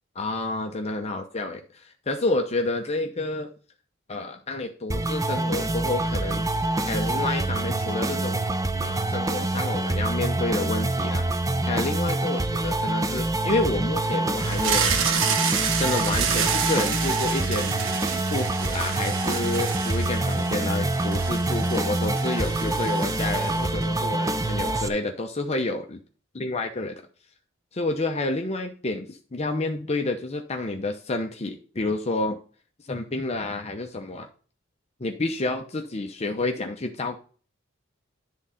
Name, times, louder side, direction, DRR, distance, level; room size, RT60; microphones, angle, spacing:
voice 1, 0.2-3.5 4.1-6.5 6.8-8.5 8.8-11.2 11.6-15.0 15.8-17.8 18.3-26.0 26.3-27.0 27.7-32.4 32.8-34.3 35.0-37.2, left 2 dB, 30° left, 4 dB, 0.7 m, -29 dB
sound 1, 4.9-24.9, right 2 dB, 15° right, 0.6 m, -26 dB
sound 2, 14.4-23.8, right 6 dB, 75° right, 0.9 m, -29 dB
10.5 x 3.7 x 5.6 m, 0.40 s
head